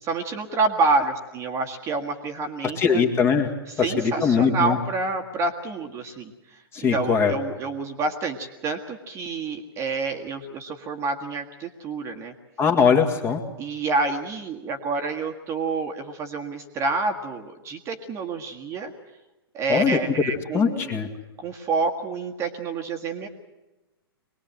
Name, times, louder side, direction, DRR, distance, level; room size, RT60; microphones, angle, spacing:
voice 1, 0.0-3.0 3.7-6.6 6.9-12.3 13.6-18.9 19.5-21.0 21.4-23.3, right 3 dB, 20° right, 3 dB, 1.8 m, -28 dB
voice 2, 2.8-3.5 3.8-4.8 6.7-7.3 12.6-13.4 19.7-20.0 20.5-21.1, left 6 dB, 20° left, 4 dB, 2.1 m, -21 dB
24.0 x 20.0 x 7.7 m, 1.0 s
figure-of-eight pair, 110°, 13 cm